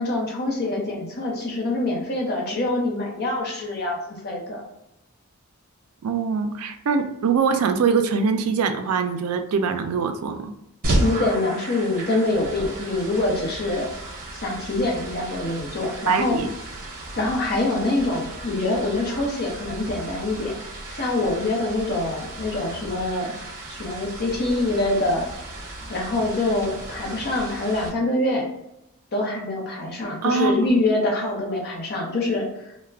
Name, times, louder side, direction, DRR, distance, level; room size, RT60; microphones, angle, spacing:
voice 1, 0.0-4.0 4.2-4.6 11.0-13.9 14.3-16.4 17.2-20.6 20.9-23.3 23.7-25.3 25.9-28.5 29.1-32.7, left 2 dB, 45° left, -1 dB, 0.7 m, -25 dB
voice 2, 6.0-10.5 16.1-16.5 30.2-30.6, right 5 dB, 80° right, 7 dB, 0.4 m, -23 dB
sound 1, 10.8-27.9, right 1 dB, 40° right, 0.7 m, -34 dB
2.3 x 2.1 x 3.3 m, 0.85 s
head